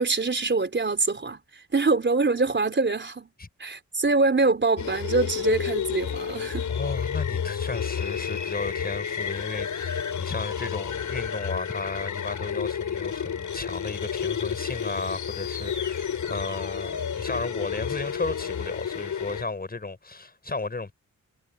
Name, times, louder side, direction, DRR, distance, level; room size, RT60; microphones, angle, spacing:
voice 1, 0.0-1.4 1.7-3.3 3.6-6.7, right 3 dB, 35° right, 4.2 m, -24 dB
sound 1, 4.8-19.4, left 7 dB, 65° left, 6.6 m, -31 dB
voice 2, 6.7-20.9, left 3 dB, 30° left, 6.3 m, -34 dB
cardioid pair, 85°, 32 cm